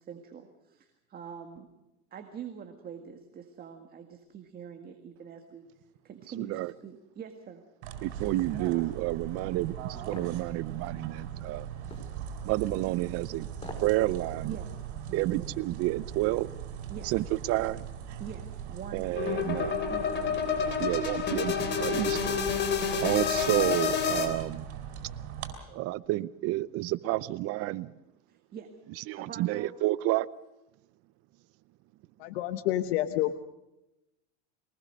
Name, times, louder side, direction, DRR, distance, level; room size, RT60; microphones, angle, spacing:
voice 1, 0.1-0.9 1.1-1.7 2.1-5.6 6.0-7.6 14.5-14.7 15.1-15.5 16.9-17.1 18.2-20.7 22.8-23.1 28.5-28.7 29.2-29.7, right 7 dB, 25° right, 5 dB, 1.8 m, -44 dB
voice 2, 6.3-6.7 8.0-11.7 12.4-13.5 13.8-14.6 15.1-16.5 17.0-17.9 18.9-19.7 20.8-22.4 23.0-24.7 25.7-27.9 28.9-30.3, right 17 dB, 45° right, 19 dB, 0.7 m, -30 dB
sound 1, 7.8-25.5, right 8 dB, 80° right, 4.7 m, -40 dB
sound 2, 10.1-10.4 11.9-12.1 13.5-13.9 14.3-14.4, left 1 dB, 15° left, 4.9 m, -42 dB
sound 3, 19.2-24.3, left 7 dB, 30° left, 3.4 m, -29 dB
voice 3, 32.2-33.3, left 14 dB, 75° left, 8 dB, 1.2 m, -28 dB
23.0 x 19.5 x 6.6 m, 0.95 s
supercardioid pair, 140°, 34 cm